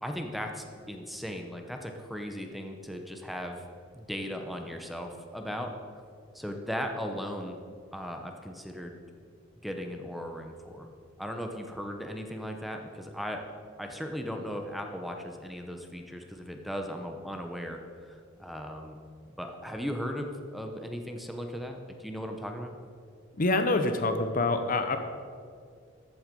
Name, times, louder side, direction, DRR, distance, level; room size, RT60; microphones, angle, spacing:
voice 1, 0.0-3.6 3.9-5.7 6.3-7.6 7.9-9.0 9.6-10.9 11.2-13.5 13.8-19.0 19.3-22.8, equal, ahead, 4 dB, 0.9 m, -37 dB
voice 2, 23.4-25.0, left 2 dB, 45° left, 7 dB, 0.8 m, -26 dB
13.5 x 7.9 x 5.3 m, 2.2 s
head